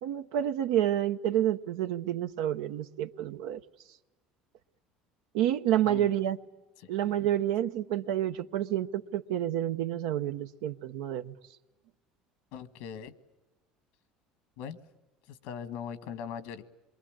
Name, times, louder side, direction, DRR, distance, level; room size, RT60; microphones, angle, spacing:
voice 1, 0.0-3.6 5.3-6.4 6.9-11.3, right 11 dB, 85° right, 0.9 m, -29 dB
voice 2, 6.8-7.1 12.5-13.1 14.6-14.8 15.3-16.6, left 8 dB, 85° left, 1.6 m, -40 dB
27.0 x 23.0 x 8.8 m
supercardioid pair, 115°, 2 cm